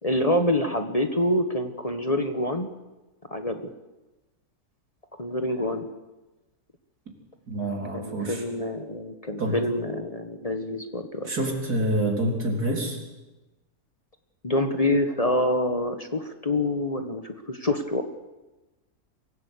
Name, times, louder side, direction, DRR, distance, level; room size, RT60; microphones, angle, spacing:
voice 1, 0.0-2.7 3.3-3.6 5.2-5.9 7.9-11.3 14.4-18.0, left 1 dB, 25° left, 7 dB, 1.3 m, -26 dB
voice 2, 7.5-8.4 9.4-9.6 11.2-13.0, right 1 dB, 85° right, 1 dB, 4.4 m, -27 dB
24.0 x 16.0 x 8.4 m, 1.1 s
omnidirectional pair, 1.6 m